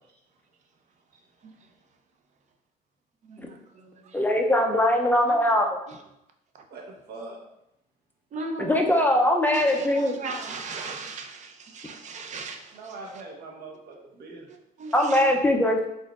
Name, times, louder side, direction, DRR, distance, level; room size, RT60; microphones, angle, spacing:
voice 1, 3.3-4.2 5.3-5.4 5.9-6.0 8.3-8.9 9.4-12.9 14.8-15.3, right 3 dB, 45° right, 4 dB, 0.6 m, -37 dB
voice 2, 4.1-5.7 8.6-10.2 14.9-15.8, left 1 dB, 10° left, 2 dB, 0.4 m, -21 dB
voice 3, 6.7-7.4 12.7-14.5, right 3 dB, 65° right, -1 dB, 1.1 m, -42 dB
4.2 x 3.7 x 2.3 m, 0.83 s
cardioid pair, 110°, 17 cm